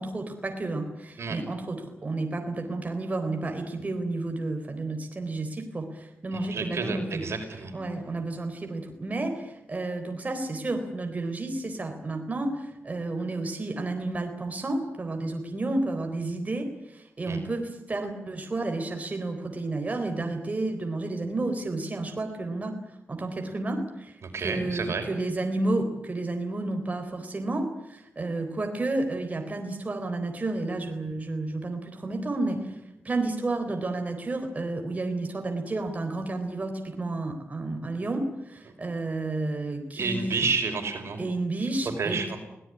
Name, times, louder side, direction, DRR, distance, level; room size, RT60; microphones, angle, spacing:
voice 1, 0.0-7.2 7.7-22.8 23.1-24.1 24.4-32.7 33.0-40.5 41.2-42.4, right 2 dB, 35° right, 4 dB, 4.0 m, -31 dB
voice 2, 6.4-7.7 17.3-17.4 24.2-25.1 40.0-41.2 42.0-42.4, right 4 dB, 75° right, 5 dB, 5.4 m, -30 dB
25.0 x 18.0 x 9.9 m, 0.88 s
wide cardioid pair, 120°, 5 cm